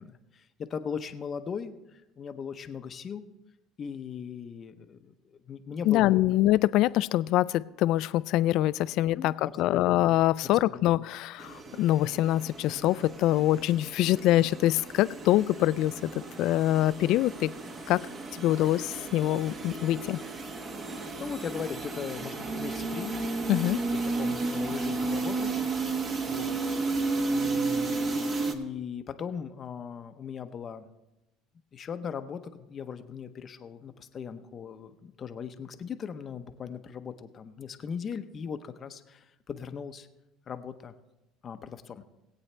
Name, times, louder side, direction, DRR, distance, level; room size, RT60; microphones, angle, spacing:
voice 1, 0.0-3.2 3.8-6.3 9.0-10.1 10.6-11.0 21.0-23.1 23.9-25.5 26.3-26.5 27.2-30.9 31.7-40.1 40.5-40.9 41.4-42.0, left 7 dB, 35° left, 9 dB, 0.7 m, -39 dB
voice 2, 5.8-16.1 16.4-17.5 17.9-18.0 18.4-20.2 23.5-23.8, left 15 dB, 65° left, 18 dB, 0.3 m, -24 dB
sound 1, 11.4-28.5, right 3 dB, 30° right, 1.1 m, -33 dB
19.5 x 8.5 x 3.3 m, 0.98 s
cardioid pair, 135°, 0 cm